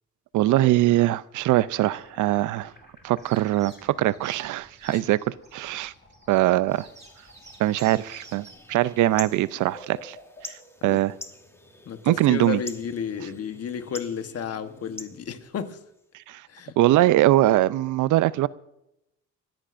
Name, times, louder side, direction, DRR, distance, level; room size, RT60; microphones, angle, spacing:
voice 1, 0.3-2.7 3.0-5.9 6.3-6.9 7.6-10.2 10.4-10.5 10.8-11.1 12.0-12.6 16.3-16.4 16.8-18.5, right 15 dB, 80° right, 0.5 m, -22 dB
sound 1, 1.3-15.5, left 2 dB, 35° left, 4.6 m, -53 dB
sound 2, 3.2-8.5, right 3 dB, 25° right, 4.8 m, -51 dB
sound 3, 6.7-16.1, left 1 dB, 10° left, 1.1 m, -46 dB
voice 2, 11.8-15.8 16.5-16.7, left 7 dB, 55° left, 1.2 m, -32 dB
29.5 x 14.0 x 2.6 m
cardioid pair, 90°, 30 cm